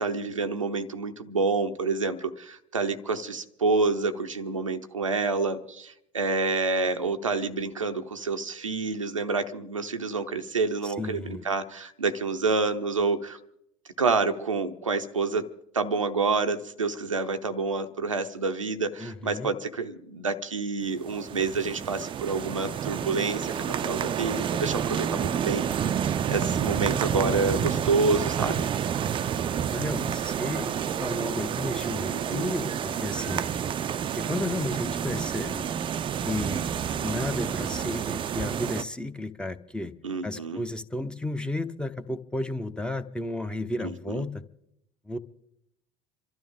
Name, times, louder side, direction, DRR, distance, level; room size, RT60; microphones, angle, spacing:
voice 1, 0.0-13.4 14.0-15.4 15.7-28.7 32.1-32.5 40.0-40.6 43.8-44.2, right 4 dB, 90° right, 7 dB, 0.7 m, -28 dB
voice 2, 10.8-11.4 19.0-19.5 29.7-30.7 31.0-33.5 34.2-35.7 36.2-36.6 36.9-39.9 40.2-44.4 45.1-45.2, left 1 dB, 5° left, 10 dB, 0.9 m, -33 dB
sound 1, 20.9-38.8, right 8 dB, 30° right, 0.5 m, -29 dB
27.5 x 12.5 x 3.7 m, 0.78 s
figure-of-eight pair, 65°, 16 cm